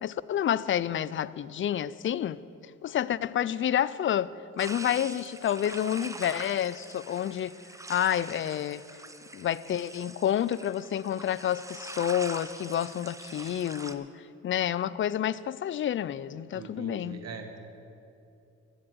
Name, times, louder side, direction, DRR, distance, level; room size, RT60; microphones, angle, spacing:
voice 1, 0.0-2.4 2.8-7.6 7.9-8.8 9.3-14.1 14.4-17.2, left 10 dB, 40° left, 0.4 m, -29 dB
sound 1, 4.6-13.9, right 2 dB, 10° right, 0.7 m, -44 dB
voice 2, 16.5-17.6, right 5 dB, 55° right, 1.4 m, -42 dB
14.0 x 7.8 x 7.9 m
cardioid pair, 90°, 30 cm